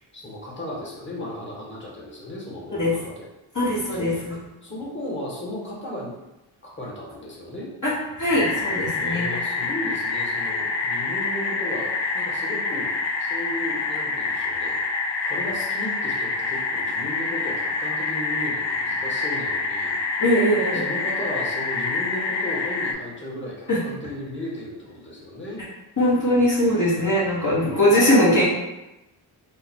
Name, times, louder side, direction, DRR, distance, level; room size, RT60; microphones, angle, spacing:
voice 1, 0.1-3.2 3.9-4.1 4.6-6.2 6.6-7.7 9.0-12.9 13.2-14.8 15.2-20.0 20.7-25.6, left 1 dB, 25° left, -4 dB, 1.5 m, -35 dB
voice 2, 3.5-4.3 7.8-9.3 20.2-20.8 23.7-23.8 26.0-28.4, equal, 40° left, -8 dB, 1.3 m, -21 dB
sound 1, 8.3-22.9, left 3 dB, 60° left, 0.6 m, -27 dB
3.8 x 2.1 x 4.4 m, 0.98 s
cardioid pair, 55°, 48 cm